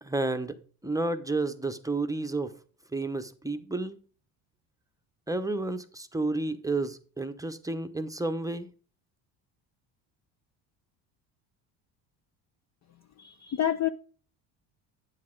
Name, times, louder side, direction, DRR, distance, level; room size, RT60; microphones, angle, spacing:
voice 1, 0.0-0.6 0.8-2.5 2.9-4.0 5.3-8.7, right 2 dB, 5° right, 0.8 m, -31 dB
voice 2, 13.2-13.9, left 11 dB, 35° left, 0.5 m, -28 dB
9.7 x 7.5 x 3.7 m
supercardioid pair, 75°, 49 cm